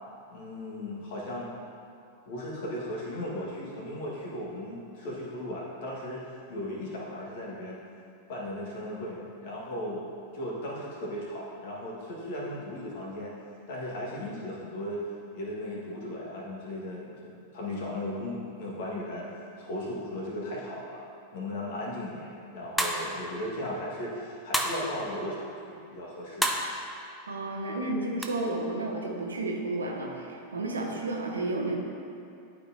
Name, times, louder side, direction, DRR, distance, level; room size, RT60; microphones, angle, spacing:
voice 1, 0.3-1.5 2.2-7.8 8.3-10.0 10.3-13.3 13.7-15.1 15.3-21.0 21.3-26.5, left 1 dB, 50° left, -4 dB, 1.7 m, -36 dB
sound 1, 22.8-23.2 24.5-24.9 26.4-26.7 28.2-28.3, equal, ahead, 0.6 m, -28 dB
voice 2, 27.3-31.8, right 2 dB, 75° right, 0 dB, 1.0 m, -32 dB
12.0 x 4.7 x 2.8 m, 2.6 s
figure-of-eight pair, 90°, 0 cm